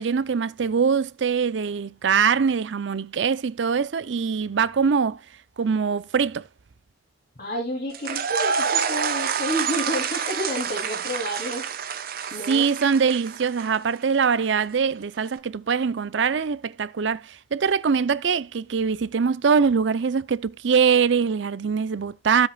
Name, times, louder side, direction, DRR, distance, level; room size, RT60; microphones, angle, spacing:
voice 1, 0.0-5.2 5.6-6.5 12.5-22.5, right 6 dB, 75° right, 0.5 m, -23 dB
voice 2, 7.4-11.6 12.3-12.6, equal, 50° left, 3.0 m, -30 dB
sound 1, 7.9-13.9, right 6 dB, 55° right, 0.8 m, -28 dB
15.5 x 5.3 x 2.3 m
head